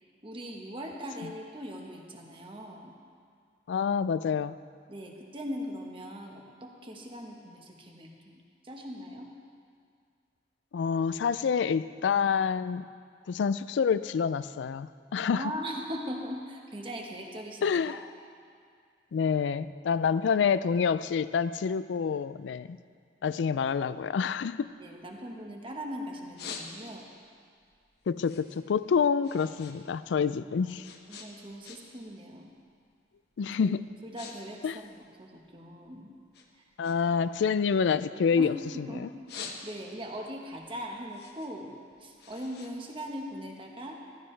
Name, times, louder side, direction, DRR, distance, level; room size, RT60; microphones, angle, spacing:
voice 1, 0.2-3.0 4.9-9.3 15.3-18.0 24.8-27.1 30.6-30.7 31.1-32.5 33.6-33.8 34.0-36.1 37.0-37.1 38.3-39.1 39.3-41.7 42.0-44.0, equal, 30° right, 1 dB, 1.3 m, -40 dB
voice 2, 3.7-4.6 10.7-12.9 13.3-15.4 17.6-18.0 19.1-22.8 23.2-24.7 28.1-30.9 33.4-33.9 34.6-34.8 36.8-38.5, left 6 dB, 85° left, 16 dB, 0.3 m, -27 dB
sound 1, 24.6-25.7 26.1-27.2 27.6-29.8 30.1-32.1 32.4-32.7 33.3-33.5 33.8-34.4 34.6-35.9 36.3-38.6 39.0-40.1 40.5-43.6, left 6 dB, 60° left, 1.1 m, -46 dB
15.0 x 13.0 x 3.3 m, 2.2 s
head